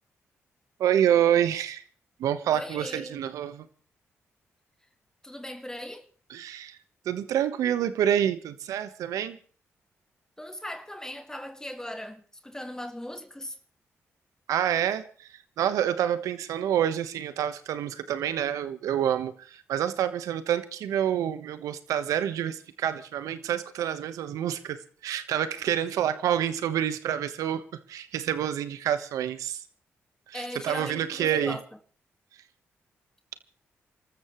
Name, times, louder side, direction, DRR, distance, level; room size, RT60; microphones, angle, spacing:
voice 1, 0.8-1.8 2.2-3.7 6.3-6.8 7.0-9.4 14.5-27.6 27.9-29.6 30.3-31.6, right 10 dB, 85° right, 1.3 m, -27 dB
voice 2, 2.5-3.3 5.2-6.1 10.4-13.6 30.3-31.6, left 1 dB, 10° left, 2.0 m, -38 dB
28.5 x 13.5 x 3.2 m
supercardioid pair, 50°, 6 cm